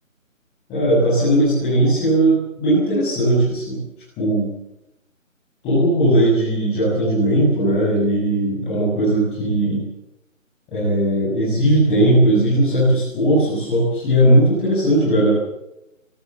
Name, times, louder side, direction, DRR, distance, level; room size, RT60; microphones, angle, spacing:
voice 1, 0.7-3.8 4.2-4.5 5.6-9.8 10.7-15.3, right 1 dB, 5° left, -12 dB, 8.0 m, -18 dB
24.0 x 24.0 x 7.8 m, 0.87 s
figure-of-eight pair, 175°, 40 cm